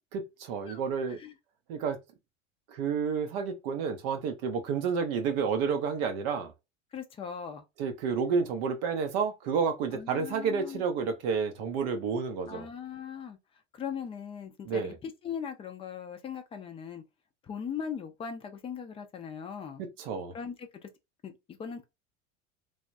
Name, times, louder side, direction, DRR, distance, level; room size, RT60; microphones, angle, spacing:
voice 1, 0.1-1.2 1.7-2.0 2.7-6.5 7.8-12.7 14.7-15.0 19.8-20.3, right 6 dB, 50° right, 0.6 m, -30 dB
voice 2, 6.9-7.6 9.9-10.8 12.5-13.4 13.7-17.0 17.4-19.8 20.3-20.9 21.2-21.3 21.6-21.8, left 7 dB, 15° left, 0.5 m, -39 dB
3.3 x 2.2 x 2.5 m
figure-of-eight pair, 75°, 39 cm